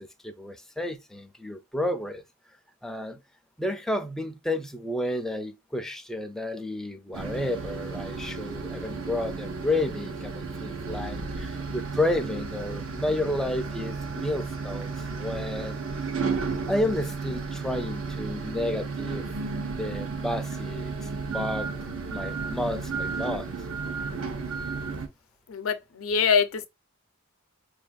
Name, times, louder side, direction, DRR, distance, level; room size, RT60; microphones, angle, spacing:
voice 1, 0.0-2.2 2.8-3.2 3.6-15.8 16.7-19.2 19.7-21.7 22.1-23.5, left 1 dB, ahead, 0.4 m, -31 dB
sound 1, 7.1-25.1, right 4 dB, 80° right, 0.7 m, -33 dB
voice 2, 25.5-26.7, left 6 dB, 90° left, 0.6 m, -24 dB
5.0 x 2.5 x 2.3 m
head